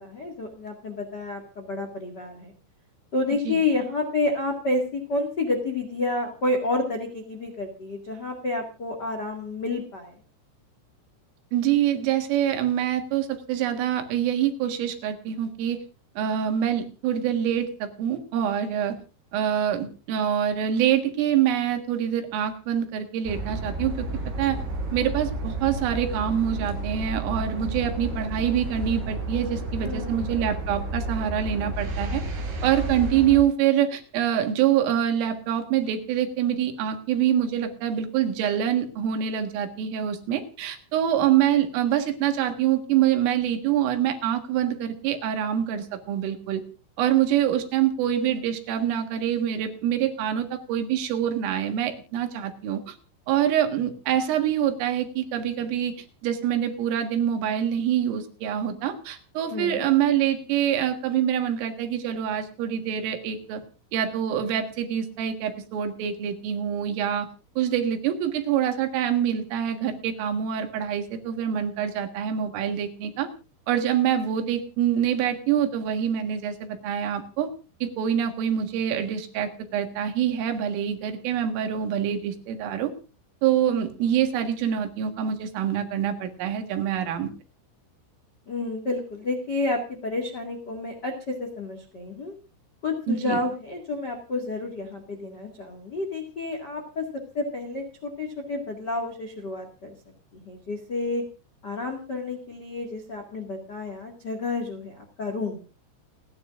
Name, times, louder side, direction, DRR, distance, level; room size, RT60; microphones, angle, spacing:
voice 1, 0.0-2.5 3.1-10.2 29.8-30.5 59.5-59.9 88.5-92.3 92.8-97.0 97.3-99.9 100.3-101.2 101.6-105.6, left 2 dB, 80° left, 3 dB, 0.9 m, -30 dB
voice 2, 11.5-15.8 16.2-19.0 19.3-24.1 24.4-24.6 24.9-32.2 32.6-46.6 47.0-53.0 53.3-55.9 56.2-63.6 63.9-67.3 67.6-73.3 73.7-77.5 77.8-82.9 83.4-87.3 93.1-93.4, right 10 dB, 85° right, 6 dB, 4.3 m, -25 dB
sound 1, 23.3-33.4, right 2 dB, 55° right, 5.7 m, -31 dB
29.0 x 9.9 x 2.5 m, 0.33 s
omnidirectional pair, 5.6 m